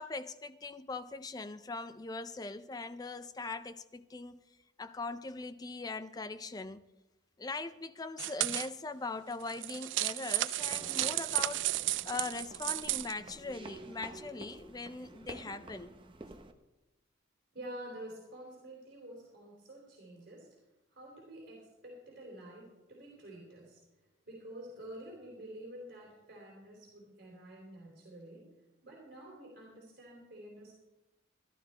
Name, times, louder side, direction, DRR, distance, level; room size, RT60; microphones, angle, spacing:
voice 1, 0.0-4.4 4.8-6.8 7.4-11.7 12.0-15.9, left 3 dB, 20° left, 0.4 m, -41 dB
sound 1, 8.2-8.7 9.4-13.1, right 16 dB, 70° right, 0.3 m, -33 dB
sound 2, 10.6-16.5, right 2 dB, 25° right, 0.8 m, -49 dB
voice 2, 17.5-20.6 20.9-28.6 28.8-30.7, right 1 dB, 50° right, 3.5 m, -49 dB
14.0 x 11.5 x 4.4 m
head